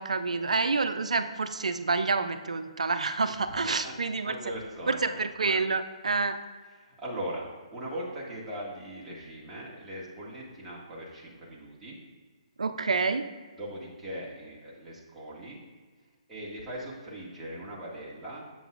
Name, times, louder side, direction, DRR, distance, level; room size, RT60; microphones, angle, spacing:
voice 1, 0.0-4.4 4.9-6.4 12.6-13.3, right 4 dB, 90° right, 10 dB, 0.4 m, -28 dB
voice 2, 3.5-5.2 6.8-7.5 7.7-12.0 13.6-15.6 16.3-18.4, right 1 dB, 10° right, -7 dB, 1.8 m, -40 dB
7.6 x 7.0 x 2.5 m, 1.5 s
hypercardioid pair, 150°, 4 cm